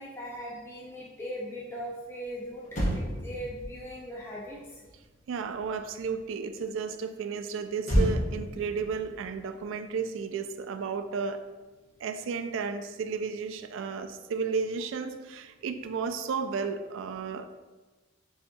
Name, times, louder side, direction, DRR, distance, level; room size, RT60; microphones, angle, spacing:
voice 1, 0.0-4.8, equal, 10° left, -5 dB, 0.4 m, -39 dB
Motor vehicle (road), 2.2-2.3 2.6-6.2 7.8-10.4 10.7-11.0, equal, 40° left, 0.9 m, -32 dB
voice 2, 5.3-11.4 12.0-17.6, right 5 dB, 80° right, 8 dB, 0.3 m, -33 dB
6.9 x 2.8 x 2.2 m, 1.2 s
head